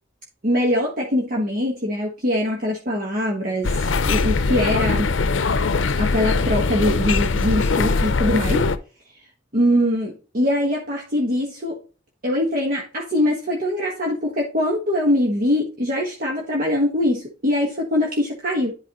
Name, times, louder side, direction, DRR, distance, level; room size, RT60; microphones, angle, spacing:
voice 1, 0.4-5.1 6.0-8.6 9.5-11.8 12.2-18.7, left 1 dB, 50° right, -1 dB, 1.4 m, -22 dB
sound 1, 3.6-8.8, left 4 dB, 80° left, 0.6 m, -21 dB
10.5 x 4.7 x 3.0 m, 0.35 s
head